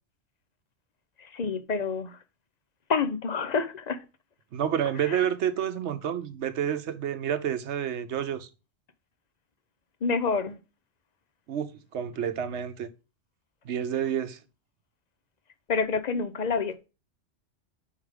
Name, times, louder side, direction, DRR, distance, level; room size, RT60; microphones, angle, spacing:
voice 1, 1.2-2.2 2.9-4.0 5.0-5.3 10.0-10.6 15.7-16.9, left 5 dB, 45° left, 0.6 m, -28 dB
voice 2, 4.5-8.5 11.5-12.9 13.6-14.4, right 9 dB, 75° right, 1.0 m, -29 dB
5.6 x 5.0 x 4.9 m
omnidirectional pair, 1.2 m